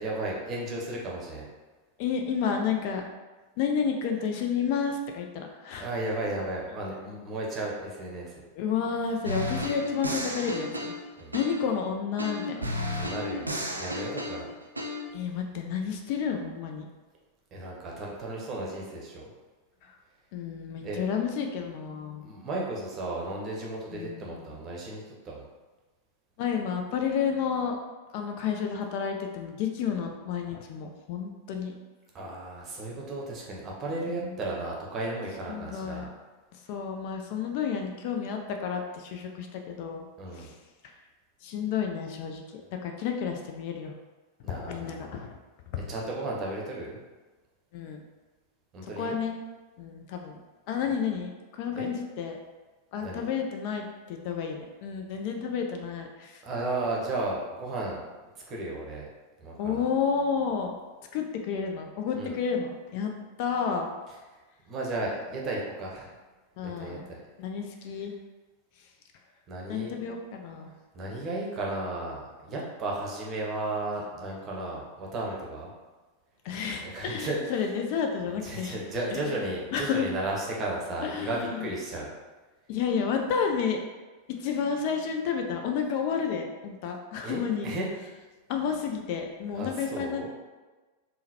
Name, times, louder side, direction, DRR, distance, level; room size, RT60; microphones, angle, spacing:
voice 1, 0.0-1.4 5.8-8.3 11.2-11.4 12.9-13.5 13.8-14.5 17.5-19.3 20.8-21.1 22.2-25.4 32.1-36.1 40.2-40.5 44.4-45.2 45.9-47.0 48.7-49.2 51.7-51.9 53.0-53.2 56.4-58.0 58.3-59.0 59.4-59.8 62.1-62.3 64.7-66.1 66.6-67.2 69.5-69.9 70.9-75.7 76.8-77.7 78.3-82.1 87.2-87.9 89.5-90.3, right 2 dB, 30° right, -2 dB, 0.7 m, -34 dB
voice 2, 2.0-3.0 3.6-5.9 8.5-10.9 11.3-12.7 15.1-16.9 20.3-22.2 23.9-24.6 26.4-27.8 28.1-31.7 34.0-34.4 35.5-36.1 36.7-40.1 40.4-40.5 41.4-43.9 44.4-45.4 47.7-48.0 49.0-49.4 49.8-50.4 50.7-52.4 52.9-56.4 59.6-60.7 61.1-63.1 63.4-63.9 66.6-67.0 67.4-68.1 69.7-70.7 76.4-78.8 79.1-79.2 79.7-80.0 81.0-81.7 82.7-83.8 84.3-87.7 88.5-90.3, left 6 dB, 45° left, 3 dB, 0.3 m, -31 dB
sound 1, 9.2-11.8 12.2-15.0, left 1 dB, 85° right, 0.4 m, -33 dB
3.6 x 2.1 x 2.8 m, 1.3 s
figure-of-eight pair, 90°, 0 cm